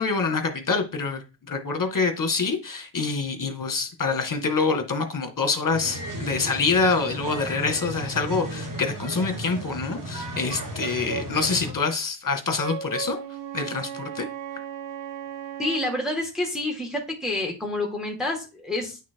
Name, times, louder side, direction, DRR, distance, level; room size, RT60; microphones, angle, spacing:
voice 1, 0.0-13.2 13.5-14.3, left 4 dB, 40° left, 1.8 m, -26 dB
sound 1, 5.7-11.7, right 1 dB, 40° right, 4.8 m, -34 dB
Wind instrument woodwind instrument, 12.5-16.1, right 8 dB, 80° right, 3.7 m, -36 dB
voice 2, 15.6-19.0, left 2 dB, ahead, 1.9 m, -28 dB
9.7 x 6.0 x 4.6 m
wide cardioid pair, 115°, 48 cm